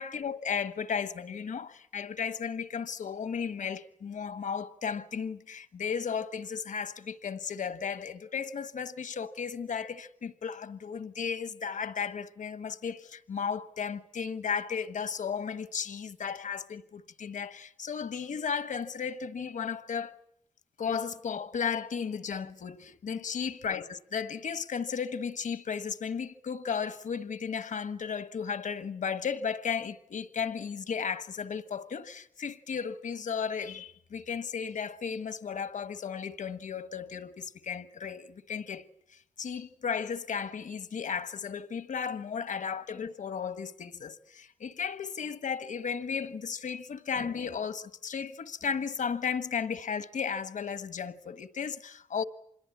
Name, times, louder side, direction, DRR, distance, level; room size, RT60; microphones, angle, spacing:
voice 1, 0.0-20.2 20.8-38.8 39.1-52.2, left 6 dB, 75° left, 1.4 m, -34 dB
26.5 x 22.0 x 8.5 m
wide cardioid pair, 130°, 13 cm